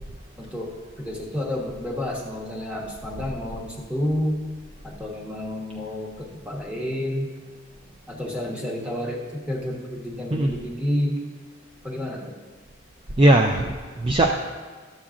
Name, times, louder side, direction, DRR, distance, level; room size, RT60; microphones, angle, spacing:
voice 1, 0.4-4.4 4.8-7.4 8.1-11.2 11.8-12.3, left 1 dB, 5° right, -3 dB, 1.1 m, -30 dB
voice 2, 13.2-14.4, right 1 dB, 25° right, 2 dB, 0.3 m, -19 dB
12.5 x 7.2 x 2.5 m, 1.5 s
head